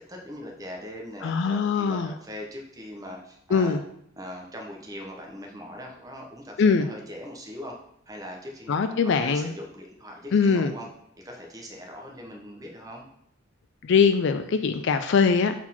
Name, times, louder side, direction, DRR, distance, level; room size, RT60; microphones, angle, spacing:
voice 1, 0.1-3.8 4.2-7.8 8.1-10.9 11.2-13.1, left 1 dB, 20° right, 0 dB, 1.0 m, -40 dB
voice 2, 1.2-2.1 3.5-3.8 6.6-6.9 8.7-9.5 10.3-10.7 13.8-15.5, left 5 dB, 60° left, 9 dB, 0.4 m, -22 dB
4.4 x 4.3 x 5.6 m, 0.72 s
head